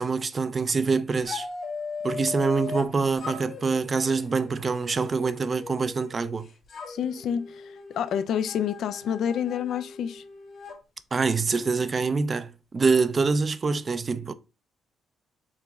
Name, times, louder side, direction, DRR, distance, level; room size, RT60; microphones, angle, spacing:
voice 1, 0.0-1.5 2.0-6.5 11.1-14.3, right 4 dB, 35° right, 0.4 m, -25 dB
sound 1, 1.2-2.9 3.2-6.3 6.7-10.8, left 4 dB, 55° left, 1.7 m, -39 dB
voice 2, 6.9-10.2, left 8 dB, 70° left, 0.4 m, -28 dB
4.8 x 2.9 x 3.5 m
cardioid pair, 90°, 0 cm